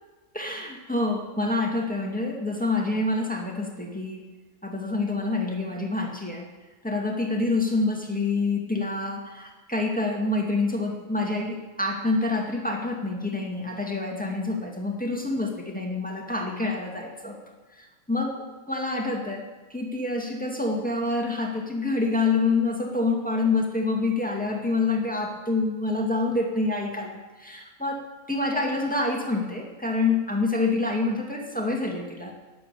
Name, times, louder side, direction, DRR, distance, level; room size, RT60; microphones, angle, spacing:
voice 1, 0.3-4.3 4.6-6.5 6.8-17.4 17.7-19.4 19.7-28.0 28.3-32.3, left 3 dB, 5° left, 0 dB, 2.1 m, -27 dB
18.5 x 7.8 x 6.9 m, 1.3 s
omnidirectional pair, 1.5 m